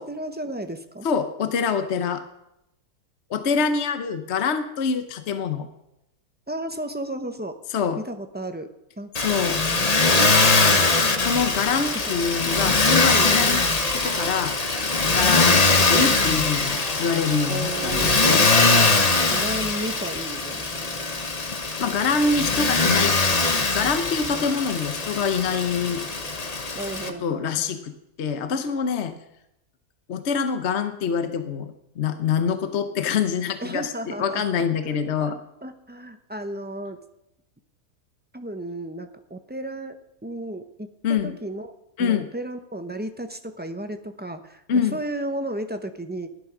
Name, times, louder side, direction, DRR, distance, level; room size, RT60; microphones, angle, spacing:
voice 1, 0.1-1.1 6.5-7.6 8.0-8.7 9.0-9.4 11.9-12.0 12.3-12.8 13.1-13.5 17.5-19.0 19.3-21.0 24.3-24.6 26.7-27.8 33.6-34.4 35.2-35.3 35.6-37.0 38.3-41.7 42.0-44.6 44.9-46.3, right 1 dB, 10° right, 7 dB, 0.4 m, -34 dB
voice 2, 1.0-2.2 3.3-5.7 7.7-8.0 9.2-9.6 11.2-13.6 13.9-14.6 15.1-18.4 21.8-23.1 23.7-26.0 27.2-27.9 28.2-29.1 30.1-35.4 41.0-41.3 42.0-42.3 44.7-45.0, left 6 dB, 50° left, 9 dB, 1.0 m, -25 dB
Motor vehicle (road), 9.1-27.1, left 3 dB, 30° left, 1.0 m, -22 dB
sound 1, 12.9-18.4, right 2 dB, 40° right, 1.5 m, -41 dB
15.5 x 11.5 x 6.0 m, 0.87 s
omnidirectional pair, 1.7 m